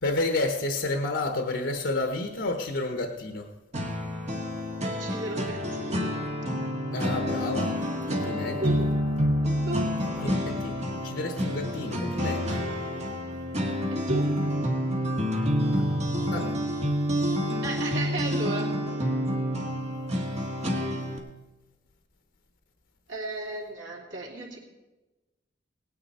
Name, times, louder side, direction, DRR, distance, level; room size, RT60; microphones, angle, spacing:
voice 1, 0.0-3.5 6.9-7.7 8.1-8.8 10.2-12.6 15.7-15.8 16.3-16.5, left 2 dB, 75° left, 4 dB, 1.0 m, -30 dB
sound 1, 3.7-21.2, equal, 35° right, 1.6 m, -28 dB
voice 2, 4.8-6.3 8.6-9.0 9.4-9.9 13.9-14.2 17.6-18.7 23.1-24.6, right 2 dB, 75° right, -1 dB, 2.9 m, -34 dB
18.0 x 9.7 x 4.2 m, 1.1 s
head